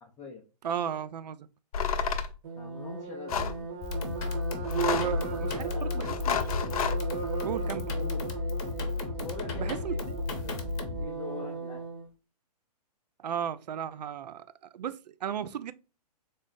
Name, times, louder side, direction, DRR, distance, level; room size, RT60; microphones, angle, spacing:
voice 1, 0.0-0.4 2.6-3.7 5.4-6.0 8.0-8.3 9.2-10.0 10.4-11.8, left 5 dB, 10° left, 0.4 m, -44 dB
voice 2, 0.6-1.5 4.7-6.4 7.4-7.9 9.5-10.2 13.2-14.4 14.7-15.7, right 9 dB, 80° right, 0.4 m, -34 dB
sound 1, 1.7-2.3 3.3-3.6 4.6-5.2 6.0-7.0, left 6 dB, 65° left, 0.6 m, -30 dB
sound 2, 2.4-12.1, right 5 dB, 55° right, 0.9 m, -38 dB
sound 3, 3.8-11.0, left 4 dB, 30° left, 0.8 m, -33 dB
3.8 x 2.0 x 3.8 m
hypercardioid pair, 135°, 21 cm